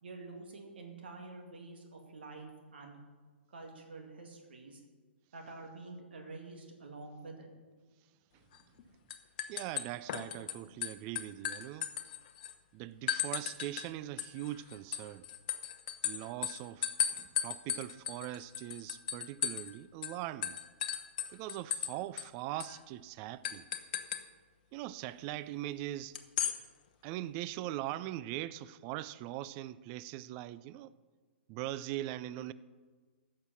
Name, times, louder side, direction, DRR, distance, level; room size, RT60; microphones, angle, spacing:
voice 1, 0.0-3.0 3.5-4.8 5.3-7.5 10.7-10.8, right 3 dB, 60° right, 2.2 m, -48 dB
sound 1, 8.5-8.8 9.1-10.5 10.8-12.5 13.1-13.9 14.2-19.7 20.0-20.1 20.4-21.9 22.2-22.3 22.6-22.8 23.4-24.2 26.1-26.6, left 10 dB, 40° left, 0.9 m, -36 dB
voice 2, 9.5-11.9 12.7-15.3 16.0-20.6 21.3-23.7 24.7-26.2 27.0-30.9 31.5-32.5, right 14 dB, 30° right, 0.4 m, -41 dB
15.0 x 6.6 x 6.0 m
figure-of-eight pair, 120°, 6 cm